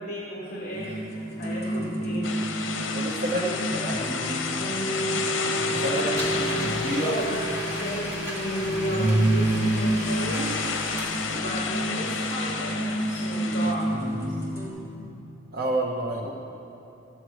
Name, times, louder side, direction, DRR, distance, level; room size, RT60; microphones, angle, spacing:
voice 1, 0.0-2.3 3.3-3.6 4.0-4.1 5.8-6.4 7.0-7.4 7.8-10.7 11.3-14.0, equal, 40° left, -4 dB, 1.4 m, -35 dB
sound 1, 0.7-14.7, right 1 dB, 15° left, 1.8 m, -29 dB
sound 2, 2.2-13.7, left 5 dB, 70° left, 0.7 m, -32 dB
voice 2, 2.9-3.4 3.7-4.0 5.6-6.0 6.4-7.2 15.5-16.3, right 1 dB, 50° right, -2 dB, 0.9 m, -29 dB
Domestic sounds home sounds, 6.2-11.8, equal, 15° right, 1.6 m, -37 dB
13.5 x 7.7 x 4.8 m, 2.9 s
head